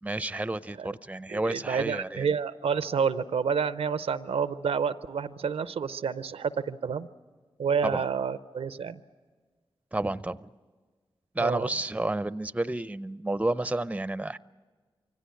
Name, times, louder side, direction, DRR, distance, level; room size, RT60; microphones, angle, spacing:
voice 1, 0.0-2.3 7.8-8.0 9.9-10.5 11.3-14.4, right 2 dB, 15° right, 16 dB, 0.6 m, -30 dB
voice 2, 1.3-7.1 7.6-9.0 11.4-11.7, right 6 dB, 80° right, 14 dB, 0.6 m, -29 dB
24.0 x 17.0 x 9.5 m, 1.5 s
cardioid pair, 40°, 10 cm